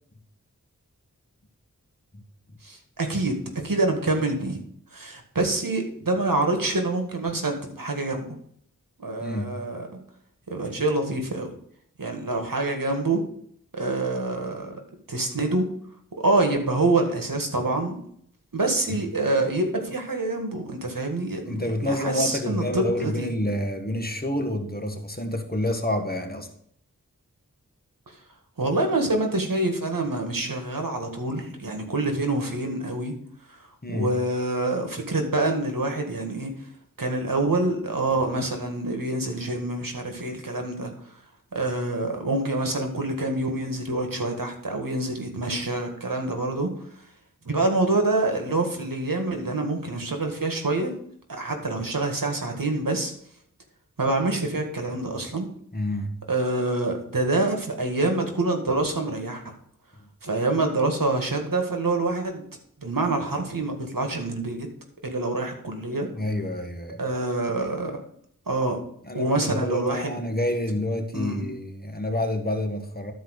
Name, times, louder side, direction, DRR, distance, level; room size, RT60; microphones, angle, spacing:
voice 1, 2.6-3.4 3.6-4.6 4.9-8.4 9.0-9.9 10.5-11.5 12.0-13.2 13.7-14.8 15.1-15.7 16.2-18.0 18.5-23.3 28.6-33.1 33.5-33.6 33.9-36.5 37.0-40.9 41.5-46.7 47.5-50.9 51.3-53.1 54.0-55.5 56.3-59.5 60.2-62.4 62.8-64.7 65.0-66.1 67.0-68.0 68.5-68.8 69.1-70.2 71.1-71.5, right 2 dB, 75° right, 4 dB, 1.8 m, -26 dB
voice 2, 9.2-9.6 18.9-19.0 21.5-26.5 33.8-34.1 55.7-56.2 66.1-67.0 69.1-73.1, left 1 dB, 25° left, 4 dB, 1.6 m, -28 dB
12.5 x 4.6 x 6.4 m, 0.66 s
wide cardioid pair, 50°, 33 cm